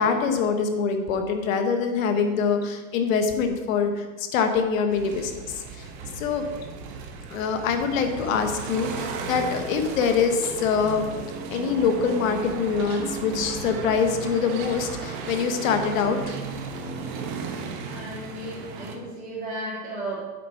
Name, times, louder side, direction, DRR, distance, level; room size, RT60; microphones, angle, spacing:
voice 1, 0.0-5.9 6.1-6.4 7.3-11.0 11.5-16.2, left 6 dB, 85° left, 6 dB, 1.2 m, -24 dB
sound 1, 4.9-19.0, right 5 dB, 45° right, 1.2 m, -35 dB
voice 2, 17.8-20.3, right 1 dB, 20° right, -7 dB, 3.2 m, -34 dB
8.4 x 6.9 x 4.6 m, 1.3 s
supercardioid pair, 165°, 39 cm